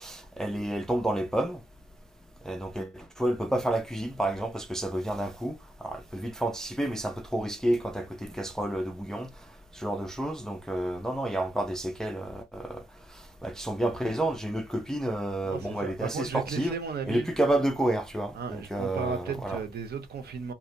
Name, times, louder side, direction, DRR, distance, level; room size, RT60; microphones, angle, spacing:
voice 1, 0.0-1.6 2.5-9.3 9.7-12.8 13.4-16.7 17.1-19.6, right 1 dB, 5° left, 0.4 m, -30 dB
voice 2, 15.4-17.3 18.3-20.5, right 6 dB, 55° right, 0.7 m, -35 dB
2.6 x 2.0 x 2.8 m
cardioid pair, 90°, 20 cm